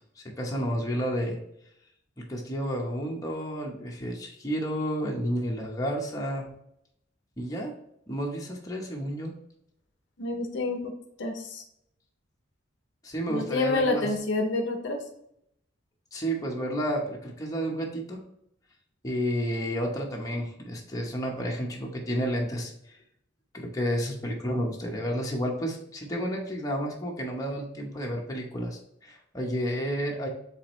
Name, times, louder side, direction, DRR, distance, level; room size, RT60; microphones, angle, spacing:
voice 1, 0.2-1.4 2.2-6.5 7.4-7.7 8.1-9.3 13.0-14.1 16.1-18.2 19.0-22.7 23.5-30.3, equal, 20° left, -1 dB, 0.8 m, -31 dB
voice 2, 10.2-10.9 11.2-11.6 13.3-15.0, left 3 dB, 60° left, 4 dB, 0.6 m, -28 dB
4.7 x 3.4 x 3.1 m, 0.75 s
head